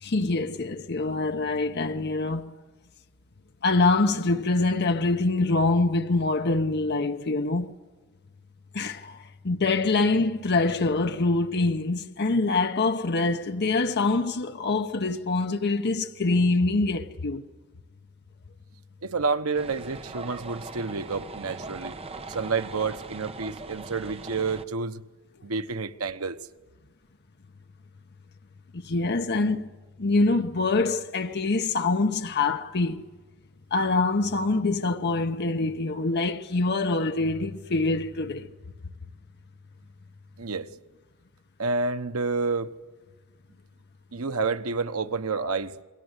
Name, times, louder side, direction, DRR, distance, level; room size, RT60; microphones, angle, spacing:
voice 1, 0.0-2.5 3.6-7.7 8.7-17.4 28.7-29.7 30.0-33.0 33.7-38.5, left 3 dB, 50° left, 0.9 m, -25 dB
voice 2, 19.0-22.0 22.3-25.0 25.4-26.4 40.4-40.7 41.6-42.7 44.1-45.7, right 4 dB, 85° right, 1.0 m, -29 dB
sound 1, 19.5-24.6, right 3 dB, 30° right, 1.1 m, -40 dB
29.5 x 22.5 x 8.1 m
head